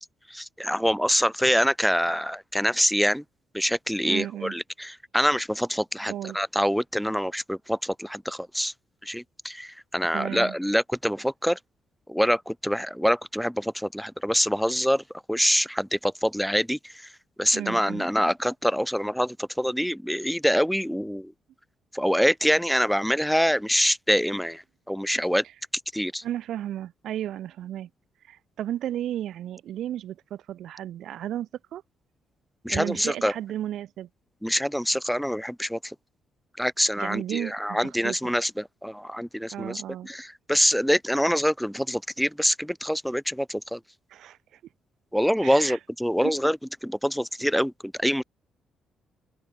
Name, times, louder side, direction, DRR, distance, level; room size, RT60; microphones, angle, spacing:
voice 1, 0.3-3.2 3.5-8.7 9.0-11.6 12.1-15.0 15.3-16.9 17.4-21.3 21.9-25.4 25.9-26.2 32.6-33.3 34.4-35.9 36.6-43.8 45.1-48.2, equal, ahead, 0.9 m, -25 dB
voice 2, 4.0-4.5 6.1-6.4 10.1-10.6 17.5-18.1 26.2-27.9 28.3-31.8 32.7-34.1 37.0-38.3 39.5-40.1 44.1-44.6 45.4-45.8 46.2-46.3, right 11 dB, 75° right, 1.5 m, -34 dB
open air
cardioid pair, 90°, 0 cm